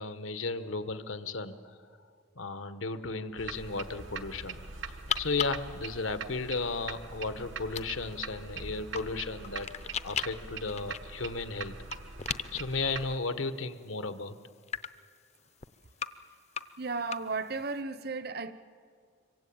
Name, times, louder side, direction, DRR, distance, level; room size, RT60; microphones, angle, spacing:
voice 1, 0.0-1.8 2.3-4.6 5.1-9.7 10.0-11.7 12.5-14.3, left 3 dB, 85° left, 1.4 m, -34 dB
sound 1, 3.4-13.2, right 5 dB, 75° right, 1.3 m, -43 dB
sound 2, 3.5-17.8, left 8 dB, 35° left, 0.6 m, -42 dB
voice 2, 16.8-18.5, right 4 dB, 50° right, 0.9 m, -34 dB
26.0 x 23.5 x 8.8 m
head